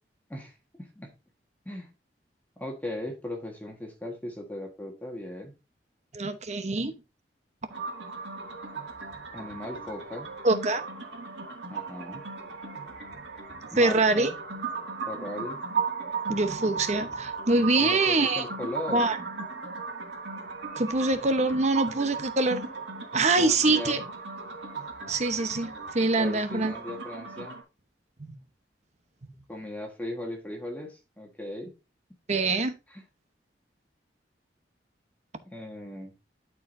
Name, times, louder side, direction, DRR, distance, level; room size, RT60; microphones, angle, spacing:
voice 1, 0.3-1.1 1.6-1.9 2.6-5.5 9.3-10.3 11.7-12.3 13.7-14.4 15.1-15.6 17.8-19.1 23.4-24.0 26.2-27.6 29.5-31.7 32.9-33.0 35.5-36.1, left 1 dB, 10° left, 0 dB, 1.4 m, -38 dB
voice 2, 6.1-6.9 10.4-10.8 13.8-14.3 16.3-18.4 18.9-19.2 20.8-22.7 23.1-24.0 25.1-26.7 32.3-32.7, right 3 dB, 40° right, 9 dB, 0.9 m, -24 dB
sound 1, 7.7-27.6, right 4 dB, 75° right, 2.2 m, -37 dB
12.0 x 4.7 x 2.6 m, 0.28 s
head